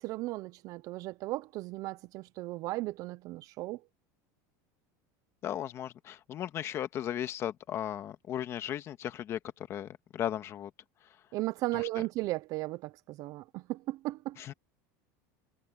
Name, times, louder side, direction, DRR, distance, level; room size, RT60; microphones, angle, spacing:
voice 1, 0.0-3.8 11.3-14.4, right 19 dB, 40° right, 0.5 m, -36 dB
voice 2, 5.4-10.7 11.7-11.8 14.4-14.5, left 11 dB, 30° left, 1.5 m, -36 dB
supercardioid pair, 160°, 9 cm